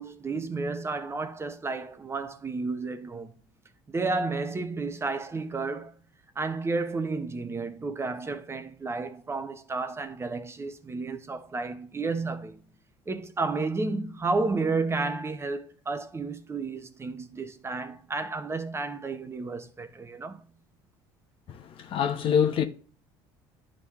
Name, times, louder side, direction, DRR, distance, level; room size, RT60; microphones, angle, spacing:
voice 1, 0.0-3.3 3.9-5.9 6.4-12.6 13.1-20.4, right 3 dB, 25° right, 1.0 m, -32 dB
voice 2, 21.5-22.6, left 8 dB, 55° left, 1.1 m, -25 dB
11.0 x 3.8 x 3.1 m
supercardioid pair, 85°, 11 cm